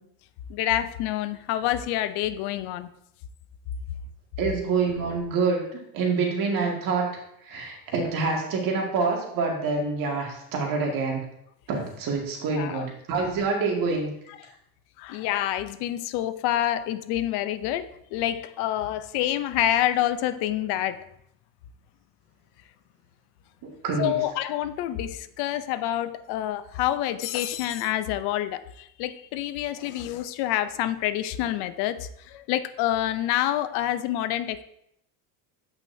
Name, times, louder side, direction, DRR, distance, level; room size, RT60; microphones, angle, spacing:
voice 1, 0.5-2.9 12.5-12.9 14.4-14.5 15.0-21.0 24.0-34.6, left 12 dB, 65° left, 12 dB, 0.7 m, -27 dB
voice 2, 4.4-5.6 5.9-7.2 7.4-11.3 11.7-14.1 23.8-24.2, right 4 dB, 50° right, 0 dB, 1.9 m, -26 dB
8.1 x 5.7 x 2.7 m, 0.76 s
cardioid pair, 140°, 42 cm